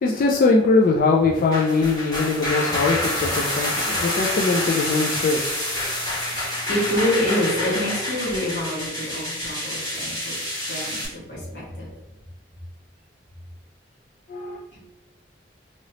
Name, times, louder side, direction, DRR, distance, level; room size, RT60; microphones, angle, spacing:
voice 1, 0.0-5.4 14.3-14.6, left 3 dB, 50° left, -1 dB, 0.3 m, -21 dB
sound 1, 1.4-11.1, left 1 dB, 20° left, 1.3 m, -27 dB
voice 2, 3.7-4.1 5.8-11.9 14.7-14.8, equal, 90° left, -7 dB, 1.4 m, -28 dB
3.0 x 2.8 x 2.8 m, 0.99 s
head